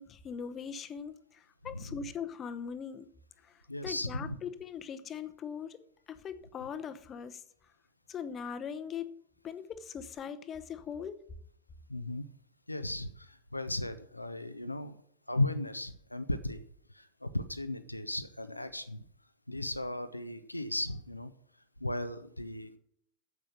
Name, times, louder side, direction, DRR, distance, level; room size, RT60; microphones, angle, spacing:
voice 1, 0.0-3.1 3.4-7.4 8.1-9.2 9.4-11.2, left 7 dB, 25° left, 0.8 m, -41 dB
voice 2, 3.7-4.4 11.9-12.3 12.7-14.9 15.3-16.6 16.9-19.0 19.5-21.3 21.8-22.8, left 1 dB, 85° left, 0.6 m, -36 dB
9.3 x 7.7 x 7.2 m
figure-of-eight pair, 90°, 0 cm